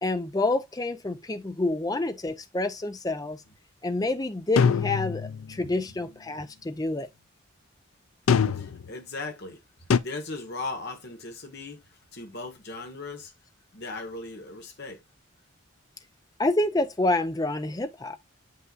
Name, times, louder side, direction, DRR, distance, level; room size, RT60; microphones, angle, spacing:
voice 1, 0.0-3.4 3.8-7.1 16.4-18.2, left 2 dB, 15° left, 0.5 m, -28 dB
sound 1, 4.6-5.5 8.3-8.9 9.9-10.0, left 6 dB, 75° left, 0.5 m, -23 dB
voice 2, 8.6-9.6 10.0-11.8 12.1-13.3 13.7-15.0, left 3 dB, 50° left, 1.5 m, -37 dB
7.7 x 5.6 x 2.4 m
head